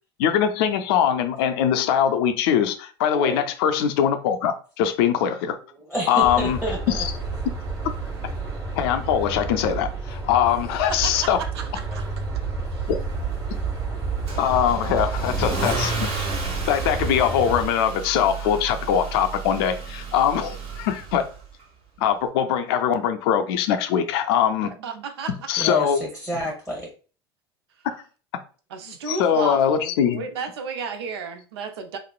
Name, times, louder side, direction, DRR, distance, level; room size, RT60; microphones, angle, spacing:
voice 1, 0.2-5.6 6.1-6.6 6.9-7.1 7.5-7.6 8.7-11.4 12.9-13.0 14.4-16.1 16.7-21.3 22.0-24.7 25.5-26.0 27.8-28.0 29.1-30.3, left 9 dB, 70° left, 0.4 m, -22 dB
voice 2, 5.7-7.0 25.6-26.9, equal, ahead, 0.9 m, -29 dB
sound 1, 6.2-17.7, right 4 dB, 25° right, 1.3 m, -30 dB
voice 3, 10.9-12.4 12.7-12.9 24.8-25.7 28.7-32.0, right 5 dB, 80° right, 0.5 m, -33 dB
Car / Engine starting / Accelerating revving vroom, 14.3-21.4, right 4 dB, 55° right, 1.4 m, -32 dB
3.0 x 2.0 x 2.3 m
hypercardioid pair, 80°, 13 cm